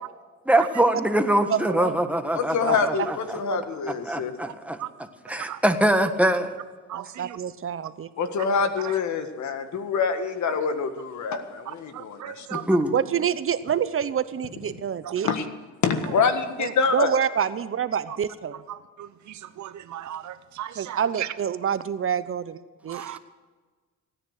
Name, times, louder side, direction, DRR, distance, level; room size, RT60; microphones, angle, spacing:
voice 1, 0.4-3.4 3.9-4.8 5.3-6.5 12.5-13.0 23.0-23.1, right 1 dB, 5° right, 6 dB, 1.5 m, -23 dB
voice 2, 1.5-1.9 2.6-2.8 3.5-3.6 6.9-8.1 12.9-15.3 16.6-18.5 20.8-22.6 22.8-23.0, right 8 dB, 45° right, 13 dB, 0.8 m, -27 dB
voice 3, 2.3-4.3 8.2-12.6 15.2-15.4 15.8-17.2, left 5 dB, 70° left, 8 dB, 1.7 m, -26 dB
voice 4, 6.9-7.4 11.9-12.6 15.0-15.1 18.1-18.2 18.7-21.0 22.9-23.2, right 11 dB, 70° right, 12 dB, 1.0 m, -37 dB
16.5 x 10.0 x 6.5 m, 1.4 s
cardioid pair, 90°, 30 cm